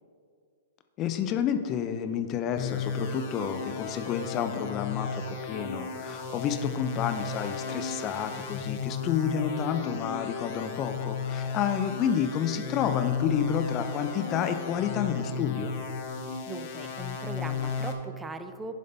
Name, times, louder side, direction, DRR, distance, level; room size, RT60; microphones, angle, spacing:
voice 1, 1.0-15.7, left 8 dB, 35° left, 8 dB, 0.7 m, -30 dB
sound 1, 2.6-17.9, left 5 dB, 55° left, 1.0 m, -34 dB
voice 2, 16.2-18.7, right 3 dB, 10° right, 9 dB, 0.5 m, -40 dB
10.5 x 5.2 x 4.0 m, 2.2 s
hypercardioid pair, 120°, 0 cm